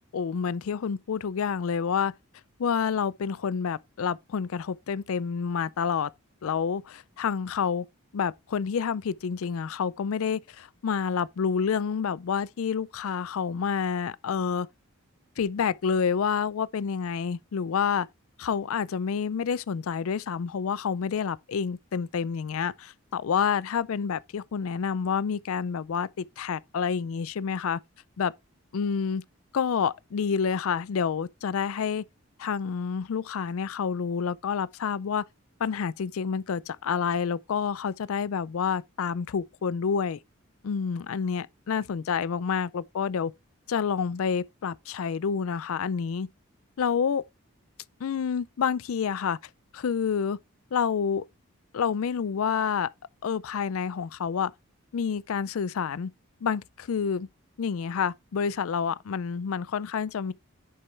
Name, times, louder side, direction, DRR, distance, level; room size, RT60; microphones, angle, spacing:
voice 1, 0.0-2.1 2.6-6.1 6.4-7.9 8.1-14.7 15.4-18.1 18.4-26.1 26.4-27.8 28.2-28.3 28.7-29.2 29.5-32.0 32.4-35.2 35.6-40.2 40.6-43.3 43.7-46.3 46.8-47.2 48.0-49.4 49.7-50.4 50.7-51.2 51.7-52.9 53.2-54.5 54.9-56.1 56.4-57.3 57.6-60.3, left 6 dB, 75° left, 0.4 m, -28 dB
8.6 x 6.9 x 3.3 m
head